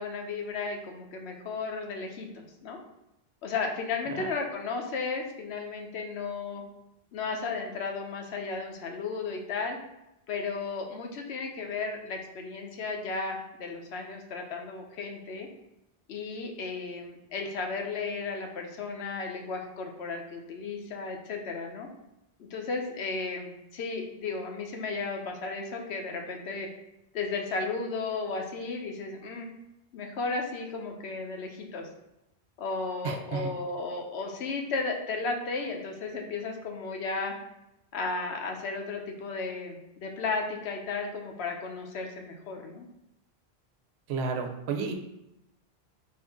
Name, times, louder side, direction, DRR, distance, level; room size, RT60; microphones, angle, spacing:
voice 1, 0.0-2.8 3.4-6.6 7.1-9.8 10.3-15.5 16.1-21.9 22.4-26.7 27.1-29.5 29.9-31.9 32.6-37.4 37.9-42.9, left 4 dB, 80° left, 2 dB, 0.9 m, -34 dB
voice 2, 33.0-33.5 44.1-44.9, right 5 dB, 80° right, 4 dB, 0.9 m, -32 dB
4.5 x 2.6 x 3.5 m, 0.90 s
omnidirectional pair, 1.1 m